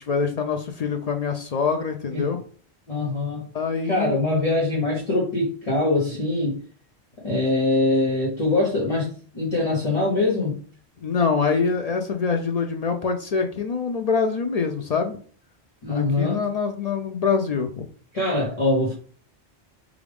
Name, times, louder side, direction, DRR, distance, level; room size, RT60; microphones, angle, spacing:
voice 1, 0.1-2.4 3.5-4.1 11.0-15.2 15.9-17.9, left 5 dB, 60° left, 0.4 m, -25 dB
voice 2, 2.9-3.5 3.8-6.6 7.2-10.6 15.8-16.5 18.1-18.9, left 2 dB, 35° left, 1.0 m, -23 dB
4.9 x 2.4 x 3.4 m
omnidirectional pair, 1.1 m